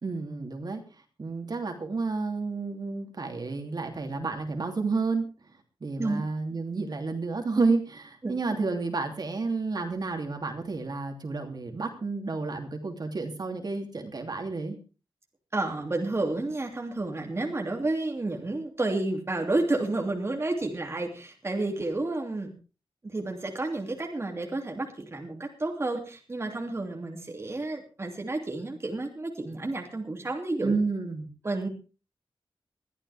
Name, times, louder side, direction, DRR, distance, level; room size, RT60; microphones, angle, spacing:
voice 1, 0.0-0.8 1.2-5.3 5.8-14.8 30.6-31.3, right 3 dB, 45° right, 4 dB, 3.1 m, -30 dB
voice 2, 15.5-22.5 23.0-30.8 31.4-31.7, right 2 dB, 30° right, 2 dB, 2.9 m, -31 dB
21.5 x 14.0 x 3.6 m, 0.34 s
wide cardioid pair, 135°, 9 cm